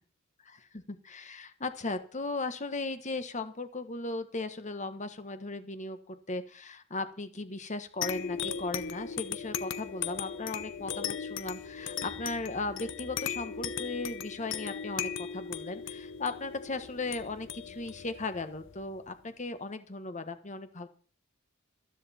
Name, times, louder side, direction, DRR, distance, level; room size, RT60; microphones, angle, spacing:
voice 1, 0.4-20.9, left 3 dB, 35° left, 9 dB, 1.3 m, -37 dB
sound 1, 8.0-19.1, left 7 dB, 65° left, 0.9 m, -38 dB
14.0 x 13.0 x 4.3 m, 0.41 s
head